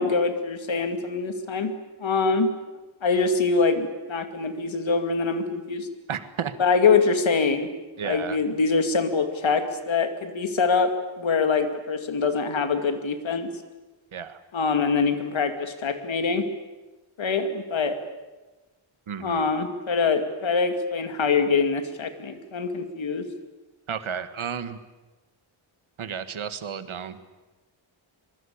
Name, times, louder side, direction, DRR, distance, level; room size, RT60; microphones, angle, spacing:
voice 1, 0.0-1.7 2.0-2.5 3.0-5.9 6.6-7.7 8.0-13.5 14.5-16.5 17.2-17.9 19.2-23.2, left 4 dB, 70° left, 8 dB, 2.4 m, -24 dB
voice 2, 6.1-6.5 8.0-8.4 14.1-14.4 19.1-19.5 23.9-24.8 26.0-27.2, right 7 dB, 75° right, 11 dB, 1.8 m, -32 dB
25.0 x 22.5 x 8.7 m, 1.1 s
wide cardioid pair, 175°, 48 cm